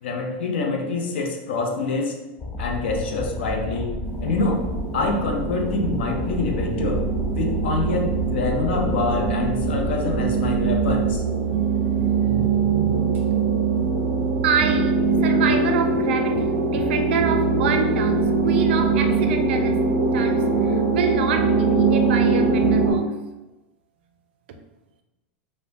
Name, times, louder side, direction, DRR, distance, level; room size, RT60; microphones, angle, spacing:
voice 1, 0.0-2.1 2.6-4.6 4.9-7.0 7.3-11.2, left 3 dB, 80° left, 1 dB, 0.6 m, -26 dB
sound 1, 2.4-11.2, left 1 dB, 20° left, 0.3 m, -31 dB
sound 2, 4.0-22.9, right 4 dB, 30° right, 0.6 m, -22 dB
voice 2, 11.5-13.4 14.4-19.7 20.1-20.4 20.9-23.0, right 6 dB, 70° right, 6 dB, 0.4 m, -27 dB
3.0 x 2.0 x 2.7 m, 1.0 s
hypercardioid pair, 110°, 6 cm